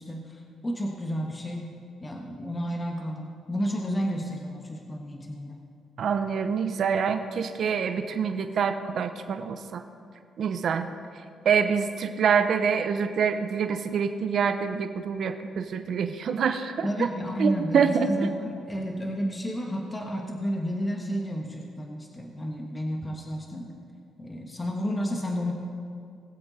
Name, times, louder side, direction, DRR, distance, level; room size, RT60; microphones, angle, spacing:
voice 1, 0.0-1.7 2.0-5.6 16.8-23.7 24.2-25.5, equal, 20° left, 1 dB, 1.4 m, -31 dB
voice 2, 6.0-9.8 10.4-10.9 11.4-16.9 17.4-18.1, right 6 dB, 60° right, 8 dB, 0.8 m, -26 dB
20.0 x 7.9 x 4.1 m, 2.3 s
cardioid pair, 90°, 0 cm